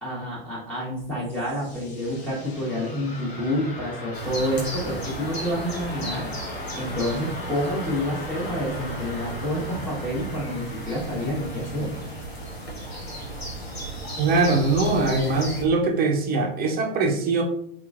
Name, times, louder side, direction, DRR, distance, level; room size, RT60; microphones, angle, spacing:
voice 1, 0.0-6.3 6.7-11.9, equal, 5° left, -9 dB, 1.3 m, -28 dB
sound 1, 0.9-13.6, left 1 dB, 40° left, 1.2 m, -39 dB
sound 2, 4.1-15.6, right 1 dB, 90° left, 1.3 m, -35 dB
voice 2, 14.2-17.4, right 3 dB, 30° right, 3 dB, 0.8 m, -22 dB
4.4 x 2.9 x 2.5 m, 0.69 s
hypercardioid pair, 100°, 30 cm